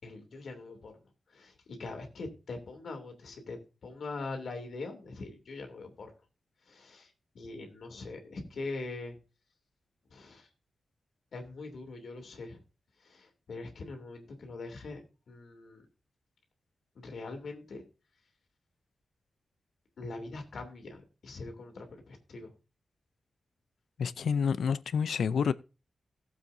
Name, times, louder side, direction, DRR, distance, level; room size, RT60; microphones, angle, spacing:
voice 1, 0.0-1.0 1.3-6.1 6.6-9.2 10.1-10.5 11.3-12.6 13.0-15.0 15.3-15.9 16.9-17.8 20.0-22.5, left 3 dB, 65° left, 2.8 m, -42 dB
voice 2, 24.0-25.5, left 6 dB, 85° left, 0.5 m, -28 dB
18.0 x 7.5 x 2.7 m
wide cardioid pair, 175°, 0 cm